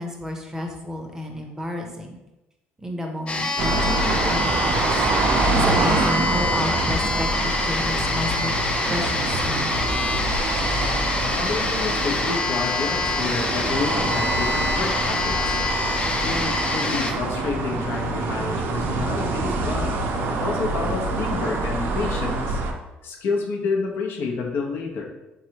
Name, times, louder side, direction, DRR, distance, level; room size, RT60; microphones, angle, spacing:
voice 1, 0.0-2.2 2.8-4.9 5.5-8.5 8.9-9.8, left 1 dB, 15° right, 2 dB, 0.6 m, -30 dB
sound 1, 3.3-17.1, left 3 dB, 30° left, 0.5 m, -26 dB
sound 2, 3.6-22.7, right 3 dB, 70° right, 0.5 m, -26 dB
voice 2, 11.2-15.6 16.2-20.0 20.3-22.6 23.0-25.0, left 4 dB, 70° left, 0 dB, 0.7 m, -29 dB
3.6 x 3.2 x 2.9 m, 1.0 s
cardioid pair, 100°, 4 cm